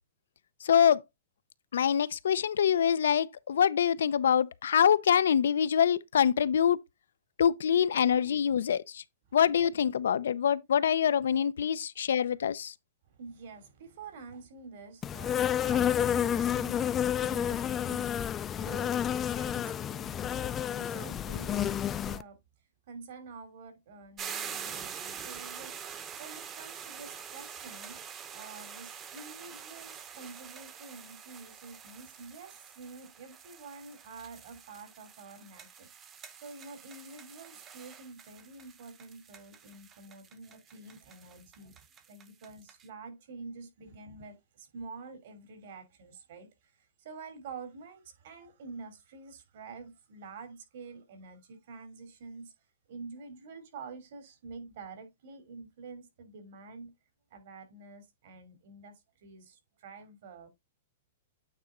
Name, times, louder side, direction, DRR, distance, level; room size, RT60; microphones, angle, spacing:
voice 1, 0.6-1.0 1.7-6.8 7.4-9.0 9.3-12.7, left 8 dB, 85° left, 0.5 m, -25 dB
voice 2, 7.8-8.5 9.3-9.4 13.0-22.4 22.9-28.0 28.3-35.9 36.4-41.8 42.1-52.5 52.9-56.9 57.3-60.5, right 4 dB, 60° right, 2.9 m, -48 dB
Insect, 15.0-22.2, left 9 dB, 20° left, 0.4 m, -30 dB
sound 1, 24.2-42.9, right 7 dB, 20° right, 0.9 m, -46 dB
8.9 x 4.1 x 3.7 m
hypercardioid pair, 150°, 0 cm